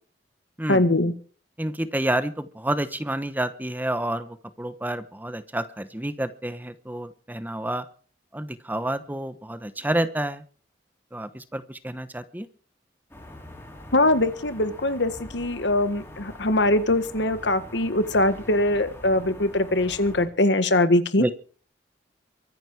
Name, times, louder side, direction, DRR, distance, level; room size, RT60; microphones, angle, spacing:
voice 1, 0.7-1.1 13.9-21.2, left 1 dB, 75° left, 11 dB, 1.7 m, -22 dB
voice 2, 1.6-7.8 8.3-10.4 11.1-12.5 21.2-21.3, right 1 dB, 10° right, 12 dB, 1.0 m, -29 dB
sound 1, 13.1-20.3, left 1 dB, 15° left, 5.8 m, -43 dB
23.5 x 10.5 x 4.8 m, 0.41 s
head